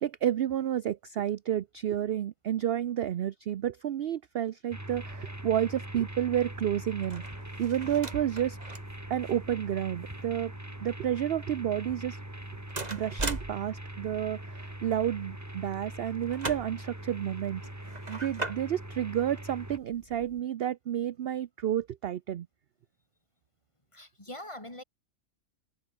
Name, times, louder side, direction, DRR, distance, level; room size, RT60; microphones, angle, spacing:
voice 1, 0.0-7.2 7.6-8.6 9.1-10.5 10.8-12.2 12.9-17.6 18.1-22.5, right 10 dB, 60° right, 0.7 m, -30 dB
sound 1, 4.7-19.8, right 1 dB, 10° right, 2.9 m, -42 dB
sound 2, 4.9-20.4, right 2 dB, 30° right, 2.8 m, -43 dB
voice 2, 23.9-24.8, left 1 dB, 20° left, 3.7 m, -43 dB
omnidirectional pair, 1.4 m